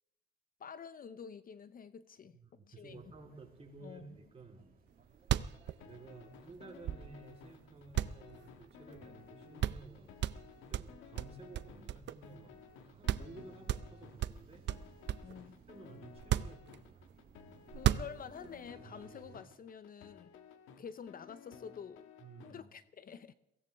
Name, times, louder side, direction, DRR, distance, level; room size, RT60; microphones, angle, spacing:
voice 1, 0.6-2.4 2.7-3.0 3.8-4.2 15.2-15.6 17.7-20.3 20.8-22.1 22.4-23.3, left 7 dB, 45° left, 14 dB, 0.6 m, -48 dB
voice 2, 2.3-4.7 5.8-10.1 10.7-12.5 12.8-14.7 15.7-17.1 22.2-22.6, right 3 dB, 30° right, 0 dB, 3.6 m, -54 dB
sound 1, 2.9-19.4, right 5 dB, 45° right, 2.6 m, -62 dB
sound 2, 4.9-5.0 5.2-7.4 7.9-9.0 9.3-9.4 9.6-9.9 10.2-12.4 12.7-12.8 13.1-13.4 13.7-15.4 16.1-17.1 17.7-18.5, right 12 dB, 65° right, 0.5 m, -35 dB
sound 3, 5.4-22.5, left 7 dB, 90° left, 1.4 m, -56 dB
23.0 x 16.5 x 3.5 m, 0.85 s
cardioid pair, 90°, 20 cm